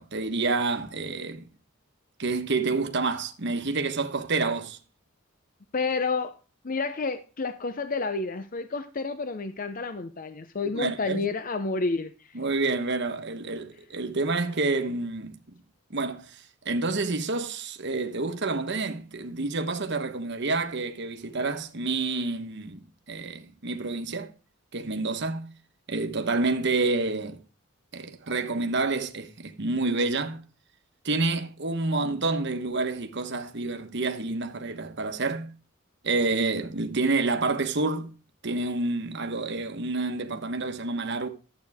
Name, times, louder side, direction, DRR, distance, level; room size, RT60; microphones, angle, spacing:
voice 1, 0.0-1.4 2.2-4.8 10.7-11.2 12.3-15.4 15.9-22.8 23.1-24.3 24.7-25.5 25.9-27.4 27.9-30.4 31.0-35.5 36.0-38.1 38.4-41.3, right 3 dB, 55° right, 1.2 m, -28 dB
voice 2, 5.7-6.3 6.6-12.3, left 3 dB, 40° left, 0.6 m, -30 dB
12.0 x 8.3 x 3.5 m
head